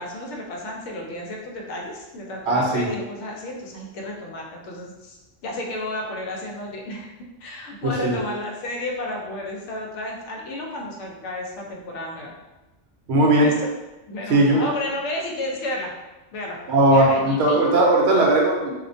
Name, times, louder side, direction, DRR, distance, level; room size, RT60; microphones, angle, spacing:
voice 1, 0.0-5.2 5.4-7.1 7.4-12.3 13.4-13.7 14.1-15.9 16.3-16.6 16.9-17.6, left 1 dB, 75° left, -1 dB, 0.9 m, -32 dB
voice 2, 2.5-2.9 7.8-8.1 13.1-13.5 14.3-14.6 16.7-18.7, right 1 dB, 65° right, -2 dB, 0.8 m, -18 dB
2.4 x 2.1 x 2.5 m, 1.1 s
omnidirectional pair, 1.3 m